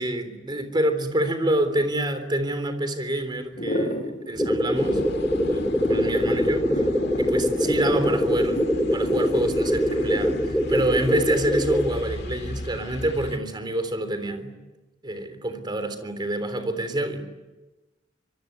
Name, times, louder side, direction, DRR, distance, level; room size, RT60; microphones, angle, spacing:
voice 1, 0.0-5.1 5.5-6.8 7.2-8.6 8.9-14.5 15.0-17.2, right 1 dB, 25° right, 8 dB, 3.5 m, -27 dB
sound 1, 3.5-11.4, equal, 40° left, 6.9 m, -32 dB
sound 2, 4.3-11.9, equal, 5° left, 2.7 m, -23 dB
sound 3, 4.7-13.4, left 1 dB, 60° left, 1.8 m, -37 dB
25.5 x 23.0 x 9.6 m, 1.1 s
head